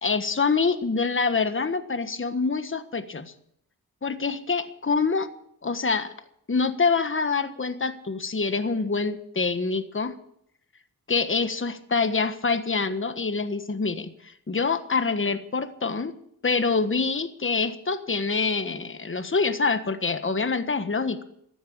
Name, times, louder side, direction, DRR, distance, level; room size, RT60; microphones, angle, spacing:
voice 1, 0.0-3.3 4.0-5.3 5.6-6.1 6.5-10.1 11.1-16.1 16.4-21.2, left 4 dB, 30° left, 9 dB, 1.4 m, -26 dB
15.0 x 10.0 x 8.5 m, 0.72 s
cardioid pair, 65°, 38 cm